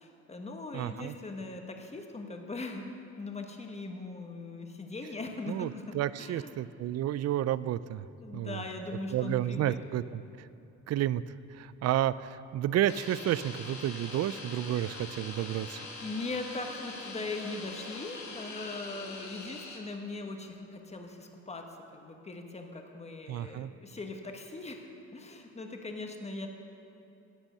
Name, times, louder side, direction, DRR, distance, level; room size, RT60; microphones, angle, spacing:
voice 1, 0.0-5.8 6.2-6.5 8.2-9.8 16.0-21.6 21.9-26.5, left 3 dB, 20° left, 3 dB, 1.2 m, -40 dB
voice 2, 0.7-1.1 5.5-8.1 8.3-8.6 9.1-10.5 10.9-11.2 11.5-15.8 23.3-23.7, right 12 dB, 55° right, 17 dB, 0.4 m, -31 dB
sound 1, 12.9-19.8, left 3 dB, 65° left, 2.0 m, -43 dB
11.5 x 8.9 x 6.6 m, 2.8 s
cardioid pair, 90°, 30 cm